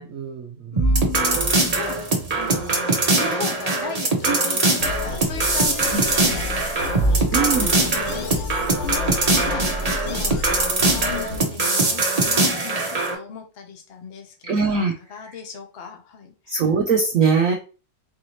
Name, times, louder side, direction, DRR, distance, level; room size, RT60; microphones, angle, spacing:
voice 1, 0.0-0.8 4.3-4.4 5.9-6.0 7.3-7.7 14.4-14.9 15.3-15.4 16.5-17.6, right 5 dB, 75° right, 3 dB, 0.7 m, -22 dB
voice 2, 0.7-1.4 1.7-16.6, left 6 dB, 45° left, 4 dB, 0.8 m, -37 dB
sound 1, 0.8-13.1, right 2 dB, 40° right, 0.5 m, -21 dB
sound 2, 4.8-11.4, left 3 dB, 80° left, 0.6 m, -31 dB
4.8 x 2.7 x 3.1 m, 0.35 s
omnidirectional pair, 2.0 m